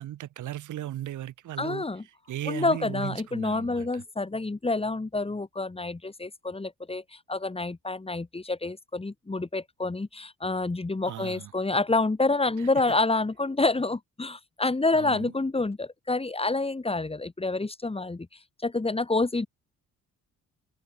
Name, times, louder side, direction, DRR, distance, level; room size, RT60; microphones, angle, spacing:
voice 1, 0.0-1.9 2.3-4.0 11.0-11.5 12.6-12.7 14.9-15.3, right 13 dB, 80° right, 6.7 m, -37 dB
voice 2, 1.6-2.0 2.5-7.0 7.3-18.3 18.6-19.5, left 3 dB, 20° left, 4.9 m, -28 dB
cardioid pair, 90°, 30 cm